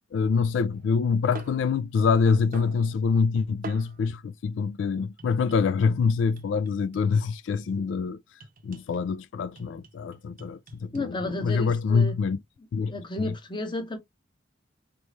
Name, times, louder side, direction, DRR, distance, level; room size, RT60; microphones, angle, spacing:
voice 1, 0.1-12.4 12.7-12.9 13.2-13.3, left 5 dB, 75° left, 0.3 m, -25 dB
sound 1, 0.7-4.1 5.2-7.3 8.4-9.1 9.6-11.1 11.7-11.9, right 4 dB, 50° right, 0.6 m, -47 dB
voice 2, 10.9-12.2 12.9-14.0, left 1 dB, 25° left, 1.1 m, -32 dB
4.1 x 3.4 x 3.1 m
head